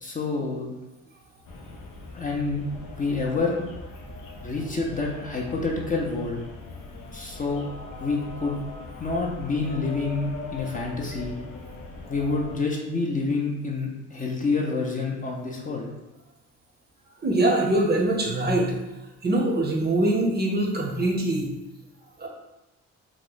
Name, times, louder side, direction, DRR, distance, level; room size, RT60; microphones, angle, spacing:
voice 1, 0.0-0.7 2.1-2.6 3.0-3.6 4.4-6.4 7.1-7.6 8.0-8.6 9.0-11.4 12.1-15.9, left 3 dB, 25° left, 0 dB, 0.5 m, -28 dB
sound 1, 1.4-12.6, left 2 dB, 90° left, 0.6 m, -40 dB
voice 2, 17.2-18.8 19.2-21.5 22.2-22.3, right 1 dB, 35° right, 0 dB, 0.6 m, -23 dB
2.9 x 2.1 x 3.8 m, 1.0 s
cardioid pair, 90°, 30 cm